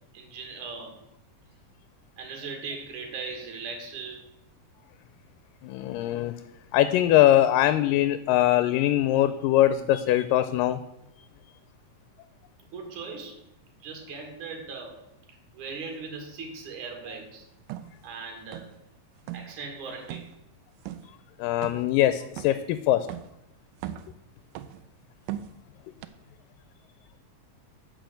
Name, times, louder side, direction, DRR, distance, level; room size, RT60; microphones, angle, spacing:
voice 1, 0.1-1.0 2.2-4.2 12.7-13.4 13.8-15.0 15.3-17.5 18.0-18.7 19.3-20.3, right 4 dB, 65° right, 3 dB, 3.2 m, -39 dB
voice 2, 5.6-6.3 6.7-10.8 21.4-23.1, left 13 dB, 85° left, 12 dB, 2.2 m, -22 dB
sound 1, 17.7-17.9 18.5-18.9 19.2-19.5 20.1-20.3 20.8-21.1 21.6-22.0 22.4-22.6 23.1-23.3 23.7-24.2 24.5-24.9 25.3-25.6 26.0-26.1, right 12 dB, 80° right, 2.0 m, -38 dB
9.2 x 5.2 x 7.7 m, 0.84 s
omnidirectional pair, 3.9 m